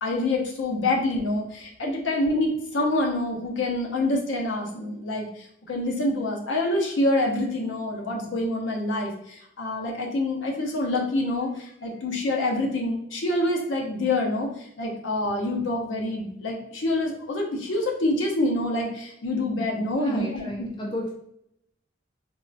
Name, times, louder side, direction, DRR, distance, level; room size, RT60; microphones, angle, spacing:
voice 1, 0.0-20.7, left 2 dB, 70° left, 0 dB, 0.7 m, -26 dB
voice 2, 19.9-21.1, left 1 dB, 25° left, -1 dB, 0.4 m, -32 dB
3.5 x 2.3 x 2.5 m, 0.74 s
head